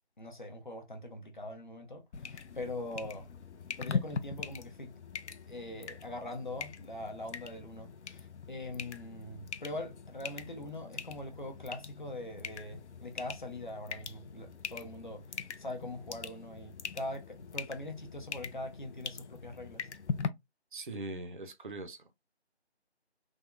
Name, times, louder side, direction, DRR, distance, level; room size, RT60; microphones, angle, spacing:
voice 1, 0.2-3.3 3.8-4.9 5.5-19.9, left 1 dB, 45° left, 0.7 m, -42 dB
sound 1, 2.1-20.3, left 6 dB, 90° left, 0.5 m, -42 dB
voice 2, 20.7-22.1, right 2 dB, 50° right, 0.5 m, -41 dB
3.5 x 2.0 x 2.2 m
figure-of-eight pair, 170°, 34 cm